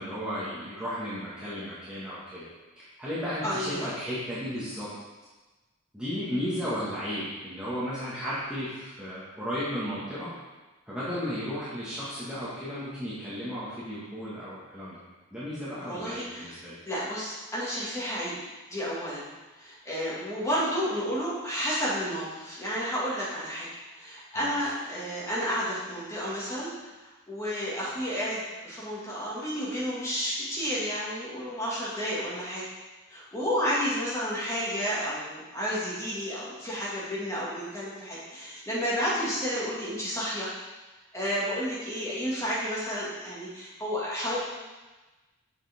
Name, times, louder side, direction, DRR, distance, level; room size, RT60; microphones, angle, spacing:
voice 1, 0.0-2.5 3.0-4.9 5.9-10.3 10.9-15.0 15.3-16.8 24.4-24.5, equal, 5° right, -12 dB, 1.7 m, -34 dB
voice 2, 3.4-3.9 15.9-16.6 16.9-18.3 18.7-19.2 19.6-23.7 23.9-26.7 27.3-32.6 33.1-40.5 41.1-44.4, equal, 15° left, -8 dB, 2.1 m, -31 dB
7.1 x 6.6 x 3.6 m, 1.2 s
head